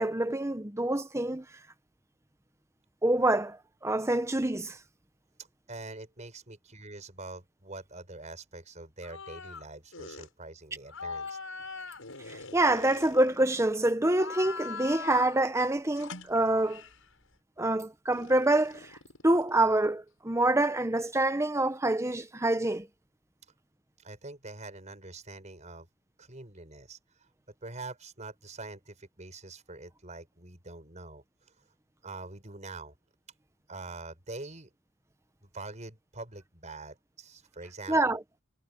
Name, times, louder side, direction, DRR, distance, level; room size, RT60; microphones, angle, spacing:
voice 1, 0.0-1.4 3.0-4.8 12.3-16.8 17.6-19.0 19.2-22.9 37.9-38.2, right 1 dB, 15° right, 1.0 m, -26 dB
voice 2, 5.7-11.4 24.0-25.9 26.2-27.0 27.6-31.2 32.0-32.9 33.7-34.7 35.4-38.2, right 2 dB, 35° right, 5.1 m, -44 dB
sound 1, 9.0-9.6 9.9-10.3 10.9-13.7 14.1-15.5 16.0-17.0 18.1-19.9, left 4 dB, 75° left, 6.8 m, -42 dB
head